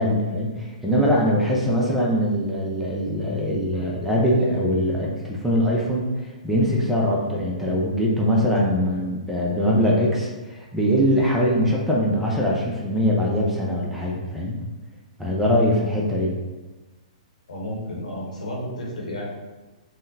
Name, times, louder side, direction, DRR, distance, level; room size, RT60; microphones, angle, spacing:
voice 1, 0.0-6.1 6.4-14.6 15.2-16.4, equal, 5° right, -4 dB, 0.5 m, -22 dB
voice 2, 17.5-19.3, equal, 70° left, -3 dB, 0.9 m, -32 dB
3.7 x 2.1 x 2.7 m, 1.2 s
hypercardioid pair, 120°, 4 cm